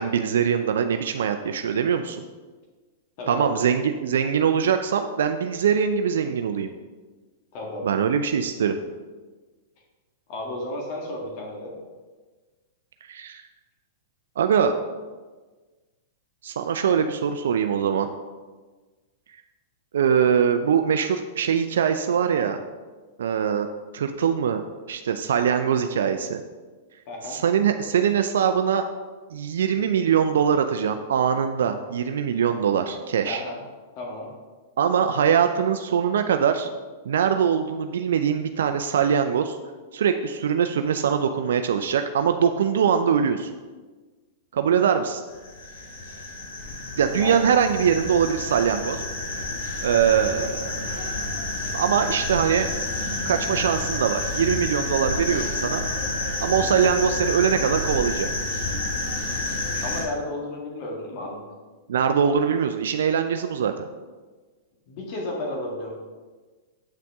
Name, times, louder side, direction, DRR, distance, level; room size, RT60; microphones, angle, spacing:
voice 1, 0.0-2.2 3.3-6.7 7.8-8.8 13.0-13.4 14.4-14.7 16.4-18.1 19.9-22.6 23.2-23.7 23.9-24.6 24.9-26.4 27.2-28.8 29.3-33.4 34.8-36.7 37.1-39.6 39.9-43.5 44.5-45.2 47.0-49.0 49.8-50.7 51.7-52.7 53.3-55.8 56.4-58.3 61.9-63.7, right 7 dB, 80° right, 7 dB, 0.4 m, -22 dB
voice 2, 3.2-3.6 7.5-7.9 10.3-11.7 27.1-27.4 33.2-33.6 34.0-34.3 47.1-47.5 59.8-61.4 64.9-65.9, left 1 dB, 50° left, -1 dB, 1.6 m, -32 dB
sound 1, 45.3-60.0, left 2 dB, 75° left, 2.3 m, -29 dB
7.7 x 5.8 x 3.5 m, 1.3 s
hypercardioid pair, 120°, 0 cm